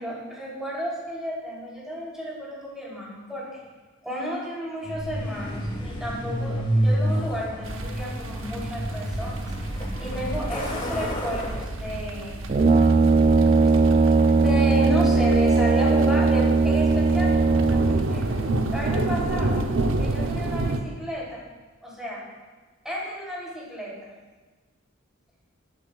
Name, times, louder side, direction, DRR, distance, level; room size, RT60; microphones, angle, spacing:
voice 1, 0.0-3.6 4.0-9.5 10.0-12.6 14.4-18.4 18.7-19.6 20.0-21.4 21.8-22.2 22.8-24.1, equal, 5° right, -6 dB, 3.2 m, -32 dB
Truck, 4.8-13.6, equal, 25° left, 1.8 m, -30 dB
sound 1, 7.6-20.8, right 2 dB, 80° right, 0.8 m, -30 dB
Brass instrument, 12.5-18.3, right 3 dB, 40° right, 0.4 m, -19 dB
13.0 x 11.0 x 2.4 m, 1.3 s
head